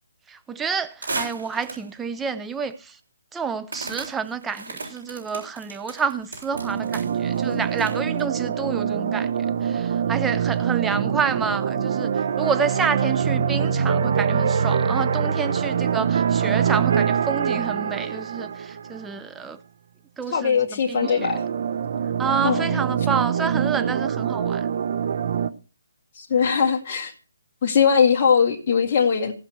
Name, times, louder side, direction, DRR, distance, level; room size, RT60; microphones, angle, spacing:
voice 1, 0.3-3.0 3.3-9.3 9.6-19.6 20.2-21.3 22.2-24.7, right 6 dB, 10° right, 0.8 m, -29 dB
sound 1, 1.0-2.0 2.6-2.7 3.7-8.2, right 3 dB, 80° right, 7.3 m, -35 dB
sound 2, 6.5-19.1 21.0-25.5, right 7 dB, 55° right, 0.9 m, -24 dB
voice 2, 20.3-21.4 22.4-22.8 26.1-27.1 27.6-29.3, left 6 dB, 40° left, 2.1 m, -20 dB
17.5 x 6.0 x 4.7 m
hypercardioid pair, 155°, 0 cm